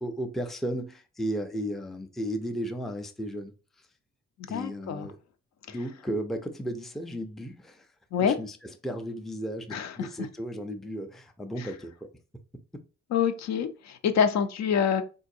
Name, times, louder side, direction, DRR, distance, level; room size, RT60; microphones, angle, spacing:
voice 1, 0.0-3.5 3.8-3.9 4.5-5.2 5.7-7.9 8.2-8.6 8.8-12.1, equal, ahead, 0.4 m, -34 dB
voice 2, 4.5-5.1 5.7-5.8 8.1-8.4 9.7-10.1 11.6-11.7 13.1-15.0, left 7 dB, 60° left, 0.5 m, -26 dB
3.7 x 2.6 x 2.6 m
cardioid pair, 90°, 30 cm